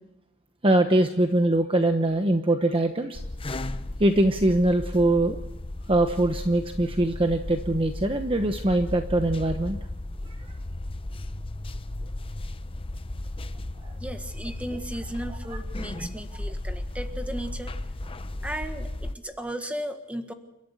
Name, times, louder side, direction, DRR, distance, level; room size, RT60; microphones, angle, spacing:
voice 1, 0.6-3.2 4.0-5.4 5.9-9.8, right 1 dB, 25° right, 6 dB, 1.0 m, -22 dB
sound 1, 3.1-19.1, left 1 dB, 25° left, 0.7 m, -35 dB
voice 2, 14.0-17.7 18.4-20.3, right 1 dB, 5° right, 6 dB, 1.6 m, -35 dB
29.5 x 13.0 x 8.1 m, 0.90 s
head